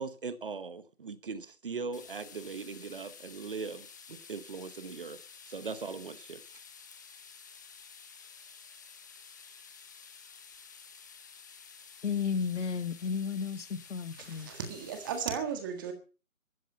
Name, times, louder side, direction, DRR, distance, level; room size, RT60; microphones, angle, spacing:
voice 1, 0.0-6.4, right 4 dB, 40° right, 1.1 m, -40 dB
sound 1, 1.9-15.2, left 6 dB, 15° left, 1.0 m, -52 dB
voice 2, 12.0-14.5, left 6 dB, 55° left, 1.8 m, -33 dB
voice 3, 14.2-15.9, right 7 dB, 15° right, 1.7 m, -35 dB
15.0 x 13.0 x 5.7 m
hypercardioid pair, 165°, 42 cm